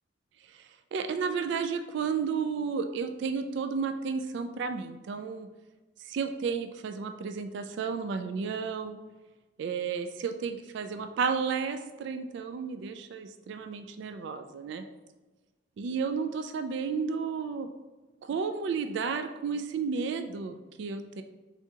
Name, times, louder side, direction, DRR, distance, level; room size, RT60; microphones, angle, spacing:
voice 1, 0.4-5.5 6.0-9.0 9.6-14.8 15.8-17.7 18.2-21.2, right 5 dB, 70° right, 8 dB, 0.3 m, -32 dB
5.0 x 3.5 x 2.7 m, 1.2 s
head